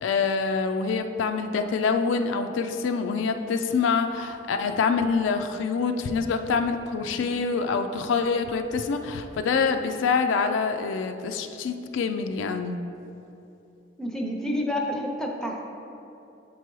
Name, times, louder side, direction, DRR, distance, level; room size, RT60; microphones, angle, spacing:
voice 1, 0.0-12.8, left 5 dB, 85° left, 7 dB, 0.3 m, -26 dB
voice 2, 14.0-15.6, left 1 dB, 5° left, 0 dB, 0.6 m, -29 dB
7.4 x 4.6 x 3.0 m, 2.8 s
head